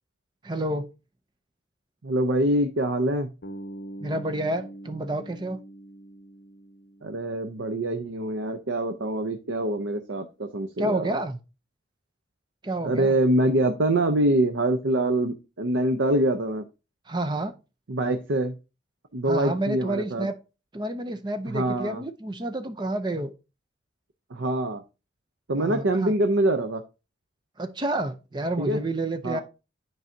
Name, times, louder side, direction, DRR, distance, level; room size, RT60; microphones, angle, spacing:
voice 1, 0.4-0.8 4.0-5.6 10.8-11.4 12.6-13.2 17.1-17.5 19.3-20.3 20.7-23.3 25.6-26.1 27.6-29.4, right 1 dB, 25° right, 0.6 m, -29 dB
voice 2, 2.0-3.3 7.0-11.2 12.8-16.7 17.9-18.6 19.1-20.3 21.5-22.0 24.3-24.8 25.5-26.8 28.6-28.8 29.2-29.4, right 1 dB, 85° right, 0.7 m, -25 dB
Bass guitar, 3.4-7.5, right 1 dB, 65° left, 0.7 m, -42 dB
10.5 x 4.7 x 2.7 m
head